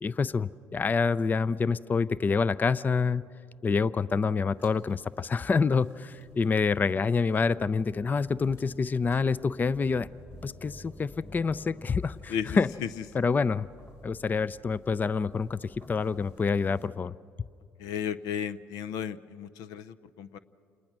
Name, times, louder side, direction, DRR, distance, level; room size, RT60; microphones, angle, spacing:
voice 1, 0.0-3.2 3.6-10.1 10.4-12.7 13.1-13.7 14.0-17.1, left 5 dB, 30° left, 18 dB, 0.4 m, -27 dB
sound 1, 4.5-16.9, left 1 dB, 45° left, 4.9 m, -52 dB
voice 2, 12.3-12.9 13.1-13.2 17.8-20.4, left 8 dB, 80° left, 13 dB, 0.6 m, -34 dB
28.5 x 19.5 x 6.2 m, 2.4 s
supercardioid pair, 75°, 6 cm